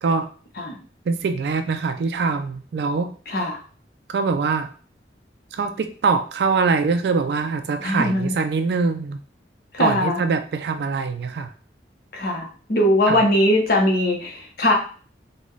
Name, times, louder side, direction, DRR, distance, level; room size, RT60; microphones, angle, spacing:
voice 1, 1.1-3.1 4.1-4.7 5.5-9.2 9.8-11.5 13.1-13.2, right 4 dB, 65° right, 8 dB, 0.3 m, -23 dB
voice 2, 3.3-3.6 7.8-8.4 9.7-10.2 12.1-14.7, left 1 dB, 55° left, 1 dB, 0.8 m, -20 dB
3.9 x 2.2 x 3.1 m, 0.41 s
head